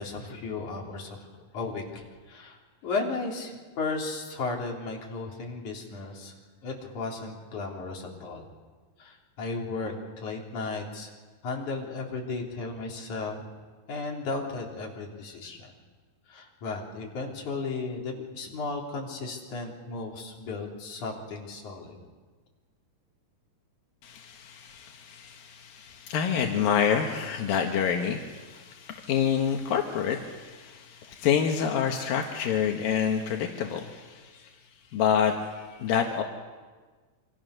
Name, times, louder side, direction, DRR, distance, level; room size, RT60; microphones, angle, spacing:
voice 1, 0.0-6.3 6.6-8.4 9.0-11.1 11.4-13.5 13.9-15.7 16.3-22.0, left 3 dB, 60° left, -1 dB, 4.9 m, -35 dB
voice 2, 24.0-34.5 34.9-36.2, left 7 dB, 85° left, 2 dB, 3.2 m, -28 dB
27.5 x 25.5 x 6.6 m, 1.4 s
omnidirectional pair, 4.0 m